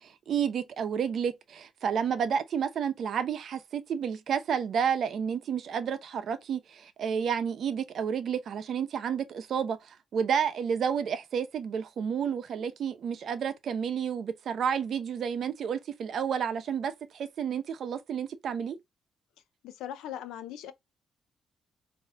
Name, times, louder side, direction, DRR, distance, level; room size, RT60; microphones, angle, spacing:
voice 1, 0.0-9.8 10.1-18.8, right 7 dB, 60° right, 0.7 m, -30 dB
voice 2, 19.6-20.7, left 11 dB, 90° left, 0.5 m, -39 dB
4.8 x 2.7 x 2.2 m
cardioid pair, 90°, 0 cm